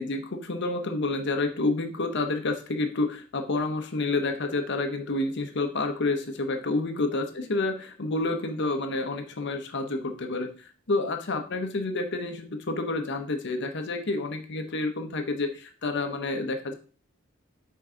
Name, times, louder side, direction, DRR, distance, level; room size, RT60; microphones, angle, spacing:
voice 1, 0.0-16.7, left 2 dB, 55° left, 6 dB, 0.8 m, -29 dB
6.0 x 4.6 x 3.8 m, 0.39 s
head